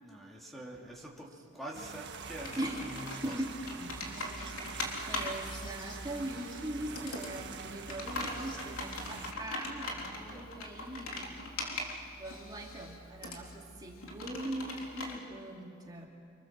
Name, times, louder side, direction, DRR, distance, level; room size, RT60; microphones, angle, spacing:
voice 1, 0.0-3.3 10.0-10.5, right 1 dB, ahead, -2 dB, 2.8 m, -46 dB
sound 1, 1.7-9.3, right 4 dB, 55° right, 1.7 m, -45 dB
Computer keyboard, 2.2-15.2, left 2 dB, 65° left, 4.0 m, -42 dB
voice 2, 2.6-2.9 3.2-4.8 5.1-11.4 12.2-16.1, right 1 dB, 20° right, -1 dB, 2.7 m, -41 dB
sound 2, 3.1-10.7, left 1 dB, 25° left, 3.1 m, -59 dB
30.0 x 26.0 x 7.6 m, 2.5 s
head